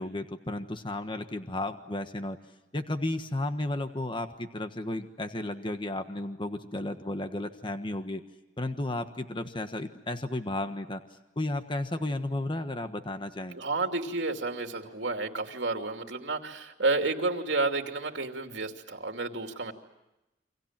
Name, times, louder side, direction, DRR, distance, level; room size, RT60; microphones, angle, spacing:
voice 1, 0.0-2.4 2.7-8.2 8.6-11.0 11.4-13.6, left 1 dB, 25° left, 8 dB, 1.4 m, -33 dB
voice 2, 13.5-19.7, right 3 dB, 75° right, 4 dB, 2.8 m, -31 dB
29.0 x 25.5 x 7.5 m, 0.94 s
head